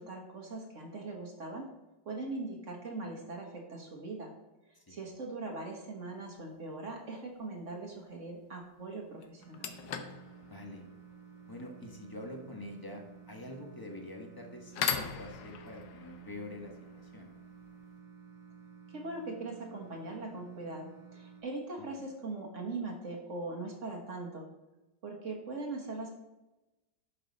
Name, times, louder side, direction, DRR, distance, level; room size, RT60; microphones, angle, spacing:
voice 1, 0.0-1.7 2.0-4.3 4.9-9.7 18.9-24.5 25.0-26.1, right 3 dB, 45° right, 0 dB, 1.6 m, -41 dB
sound 1, 6.3-6.6 8.6-8.7 9.2-17.9, left 7 dB, 75° left, 1.4 m, -41 dB
sound 2, 9.4-21.4, right 6 dB, 90° right, 2.9 m, -53 dB
voice 2, 10.4-10.8 11.5-17.3 21.8-21.9, left 1 dB, 15° left, 1 dB, 1.2 m, -46 dB
11.0 x 5.9 x 4.2 m, 1.0 s
omnidirectional pair, 2.0 m